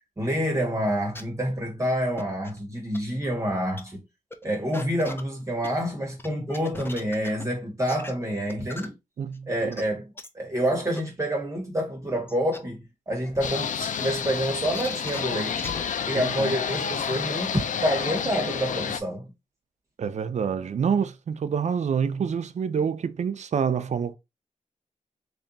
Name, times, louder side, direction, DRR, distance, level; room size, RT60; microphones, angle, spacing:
voice 1, 0.2-4.0 4.4-8.9 9.5-10.1 10.3-15.8 16.1-19.3, equal, 25° right, 1.3 m, -28 dB
sound 1, 1.1-1.2 2.2-2.6 2.9-3.0 3.4-3.5 3.8-3.9 4.3-4.4 4.7-5.8 6.2-7.4 7.9-8.1 8.5-8.9 9.3-9.4 9.7-9.8 10.2-10.3 11.0-11.1 11.7-11.8 12.3-12.6 13.3-13.5 14.6-15.2 15.6-15.8 16.1-16.2, left 1 dB, 15° left, 0.6 m, -38 dB
voice 2, 9.2-9.8 16.3-16.6 20.0-24.1, right 7 dB, 60° right, 0.5 m, -27 dB
sound 2, 13.4-19.0, left 7 dB, 70° left, 0.4 m, -30 dB
3.4 x 2.7 x 3.9 m
wide cardioid pair, 100°, 13 cm